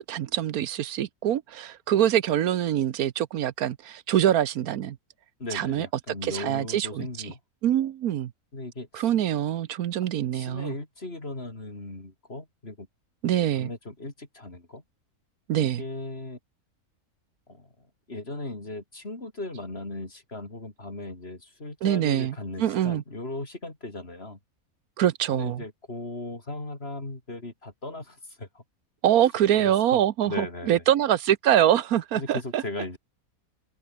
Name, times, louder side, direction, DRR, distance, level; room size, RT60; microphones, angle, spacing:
voice 1, 0.0-5.0 5.5-5.9 6.2-7.1 7.6-8.3 8.9-10.7 13.2-13.7 15.5-15.8 21.8-23.0 25.0-25.6 29.0-32.6, right 11 dB, 75° right, 1.3 m, -24 dB
voice 2, 5.4-7.4 8.5-9.1 10.3-12.9 13.6-14.8 15.6-16.4 17.5-17.7 18.1-24.4 25.3-28.6 29.6-30.8 32.1-33.0, left 2 dB, 40° left, 4.4 m, -37 dB
omnidirectional pair, 1.6 m